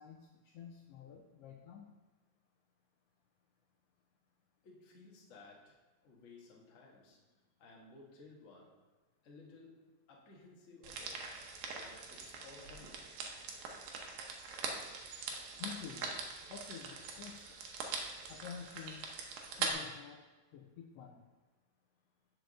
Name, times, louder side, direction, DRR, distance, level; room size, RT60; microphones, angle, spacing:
voice 1, 0.0-1.9 15.6-16.1 16.5-17.6 18.3-19.1 19.6-20.2 20.5-21.2, left 7 dB, 80° left, 1 dB, 1.4 m, -49 dB
voice 2, 4.6-5.8 6.0-7.3 7.6-8.8 9.2-11.3 11.7-13.1, left 3 dB, 50° left, -2 dB, 0.9 m, -57 dB
sound 1, 10.8-19.7, right 4 dB, 90° right, 2.3 m, -43 dB
6.3 x 4.5 x 6.6 m, 1.2 s
omnidirectional pair, 3.3 m